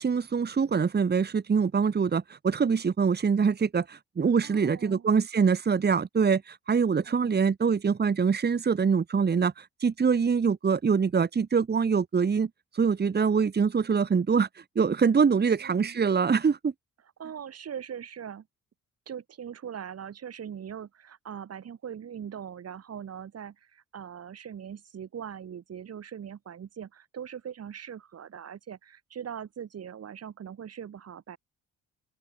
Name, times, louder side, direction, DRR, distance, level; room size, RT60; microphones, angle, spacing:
voice 1, 0.0-12.5 12.7-14.5 14.8-16.7, right 6 dB, 35° right, 1.8 m, -24 dB
voice 2, 4.4-5.1 7.0-7.4 15.4-16.0 17.2-18.5 19.1-31.4, right 8 dB, 55° right, 4.8 m, -41 dB
open air
cardioid pair, 90°, 30 cm